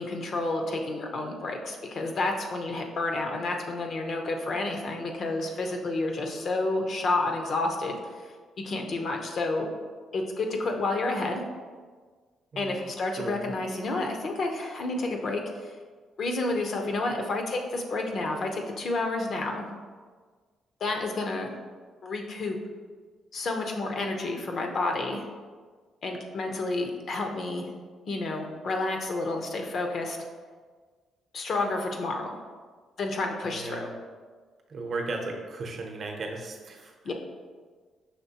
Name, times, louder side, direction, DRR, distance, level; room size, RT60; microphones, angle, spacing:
voice 1, 0.0-8.3 8.6-9.7 10.1-11.4 12.6-15.7 16.2-19.7 20.8-21.5 22.0-22.6 23.3-25.2 26.0-27.7 28.1-30.2 31.3-32.4 33.0-33.9 37.0-37.1, left 2 dB, 55° left, 3 dB, 0.7 m, -30 dB
voice 2, 13.2-13.5 33.4-34.0 34.7-36.9, right 3 dB, 50° right, 2 dB, 0.7 m, -35 dB
5.8 x 3.1 x 2.8 m, 1.5 s
cardioid pair, 90°, 0 cm